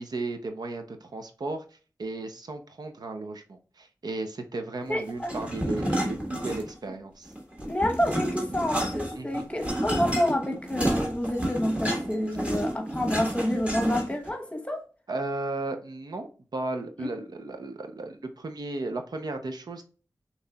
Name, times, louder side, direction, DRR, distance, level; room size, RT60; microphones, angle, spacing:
voice 1, 0.0-1.6 2.0-7.3 9.2-9.5 15.1-19.8, right 2 dB, 80° right, 0.7 m, -35 dB
voice 2, 4.9-5.3 7.7-14.8 17.0-17.2, left 1 dB, 15° left, 1.0 m, -28 dB
sound 1, 5.2-6.9 7.3-14.3, equal, 20° right, 1.4 m, -30 dB
6.5 x 3.0 x 2.3 m
wide cardioid pair, 70°, 7 cm